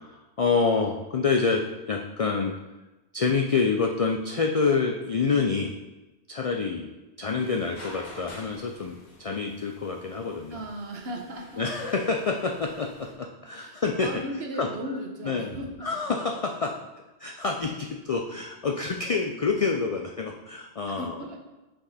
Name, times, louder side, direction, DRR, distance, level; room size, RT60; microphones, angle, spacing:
voice 1, 0.0-2.5 3.1-5.7 6.3-6.9 7.2-10.6 11.6-14.1 14.6-14.7 15.2-15.5 15.8-16.8 17.2-21.1, left 4 dB, 60° left, 2 dB, 0.3 m, -27 dB
sound 1, 7.4-13.1, left 2 dB, 40° left, 1.1 m, -49 dB
voice 2, 10.5-11.7 12.8-12.9 13.6-16.0 20.9-21.4, equal, 65° right, 2 dB, 1.2 m, -36 dB
6.1 x 5.0 x 4.2 m, 1.1 s
omnidirectional pair, 1.2 m